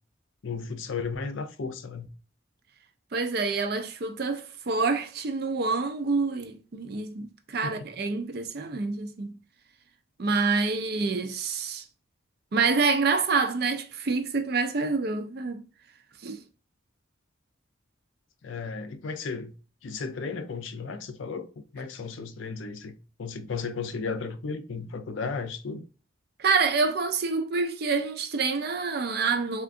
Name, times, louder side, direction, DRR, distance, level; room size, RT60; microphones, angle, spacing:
voice 1, 0.4-2.1 7.6-7.9 18.4-19.5 19.8-25.9, left 4 dB, 75° left, 0.5 m, -34 dB
voice 2, 3.1-9.4 10.2-11.8 12.5-15.7 16.2-16.4 26.4-29.6, right 4 dB, 50° right, 0.4 m, -27 dB
3.6 x 2.4 x 2.4 m
head